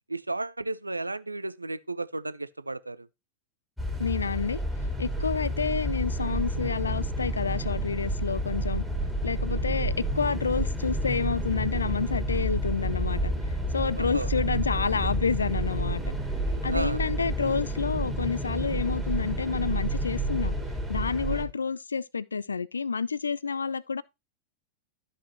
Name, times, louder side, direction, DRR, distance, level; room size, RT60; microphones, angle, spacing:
voice 1, 0.1-3.1 5.2-5.3 9.5-9.8 14.0-14.3 16.7-17.0 21.3-21.5, right 2 dB, 85° right, 0.4 m, -34 dB
sound 1, 3.8-21.4, right 1 dB, 5° right, 2.2 m, -30 dB
voice 2, 4.0-4.6 5.0-8.8 9.2-13.3 13.7-16.1 16.6-20.5 20.9-24.0, left 5 dB, 75° left, 0.3 m, -29 dB
12.5 x 5.4 x 3.0 m
figure-of-eight pair, 90°, 0 cm